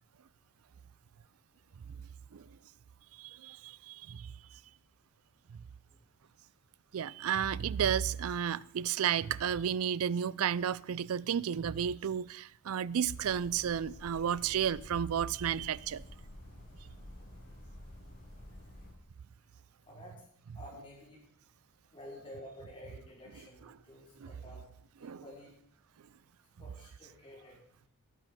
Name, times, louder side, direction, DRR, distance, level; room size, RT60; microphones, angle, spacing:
voice 1, 3.1-4.6 5.5-5.6 6.9-16.0 24.2-24.3 25.0-25.2, right 8 dB, 75° right, 0.4 m, -32 dB
sound 1, 13.1-18.9, left 1 dB, 50° left, 6.5 m, -51 dB
voice 2, 19.9-20.2 20.5-21.2 21.9-24.6 25.0-25.5 26.6-27.6, left 1 dB, 25° left, 5.1 m, -51 dB
17.0 x 6.8 x 6.0 m
head